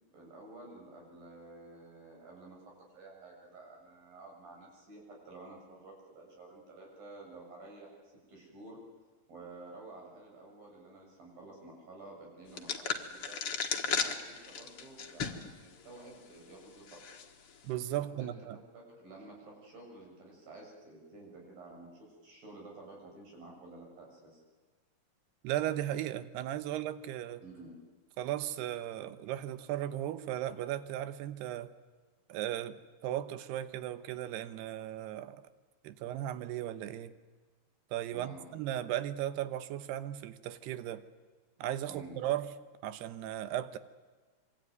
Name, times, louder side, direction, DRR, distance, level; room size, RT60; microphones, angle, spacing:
voice 1, 0.1-7.9 8.3-8.8 9.3-13.4 13.8-17.0 18.2-18.3 18.7-24.4 27.4-27.8 38.1-38.4 41.9-42.2, right 2 dB, 60° right, 0 dB, 8.8 m, -51 dB
sound 1, 12.6-15.5 16.0-16.1 16.9-17.2, left 6 dB, 50° left, 1.9 m, -35 dB
voice 2, 17.6-18.6 25.4-27.4 28.2-31.7 32.3-35.4 35.8-37.1 37.9-41.0 41.6-42.5 42.8-43.8, right 12 dB, 85° right, 13 dB, 3.1 m, -36 dB
26.0 x 24.0 x 9.4 m, 1.4 s
omnidirectional pair, 4.6 m